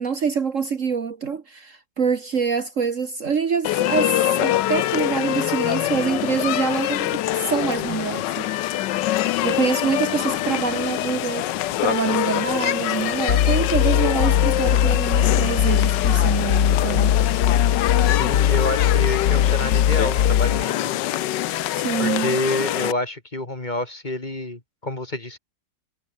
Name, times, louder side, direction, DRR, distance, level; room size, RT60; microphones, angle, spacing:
voice 1, 0.0-8.8 9.4-11.5 11.8-17.1 21.7-22.4, right 6 dB, 50° right, 1.5 m, -25 dB
sound 1, 3.6-22.9, left 14 dB, 85° left, 1.4 m, -25 dB
sound 2, 13.3-20.6, left 10 dB, 65° left, 1.4 m, -20 dB
voice 2, 18.1-20.9 22.0-25.4, left 1 dB, 25° left, 2.9 m, -28 dB
omnidirectional pair, 1.9 m